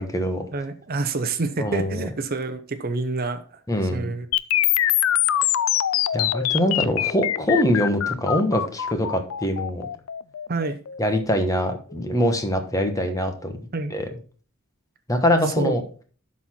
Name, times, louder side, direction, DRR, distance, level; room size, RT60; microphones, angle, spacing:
voice 1, 0.0-0.4 1.6-2.1 3.7-4.1 6.1-9.9 11.0-13.6 13.9-14.1 15.1-15.8, left 1 dB, 15° left, 6 dB, 1.2 m, -23 dB
voice 2, 0.5-3.4 3.9-4.3 10.5-10.8 13.7-13.9 15.6-15.8, right 3 dB, 45° right, 10 dB, 0.7 m, -27 dB
sound 1, 4.3-12.3, left 12 dB, 75° left, 0.4 m, -24 dB
12.0 x 4.3 x 4.3 m, 0.40 s
head